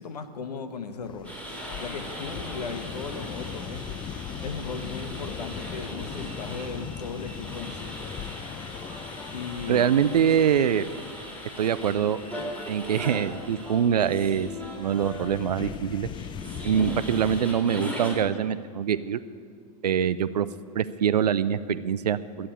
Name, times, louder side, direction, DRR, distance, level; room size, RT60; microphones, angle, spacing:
voice 1, 0.0-1.3 1.8-4.0 4.4-8.0 9.3-9.9, left 5 dB, 85° left, 9 dB, 1.1 m, -37 dB
sound 1, 1.0-17.4, left 8 dB, 25° left, 0.6 m, -40 dB
sound 2, 1.2-18.2, equal, 5° left, 3.7 m, -39 dB
voice 2, 9.7-10.9 11.6-12.2 12.7-14.5 14.8-16.1 16.6-19.2 19.8-20.5 20.8-22.5, right 8 dB, 90° right, 14 dB, 0.5 m, -24 dB
11.0 x 8.7 x 9.9 m, 2.1 s
hypercardioid pair, 110°, 20 cm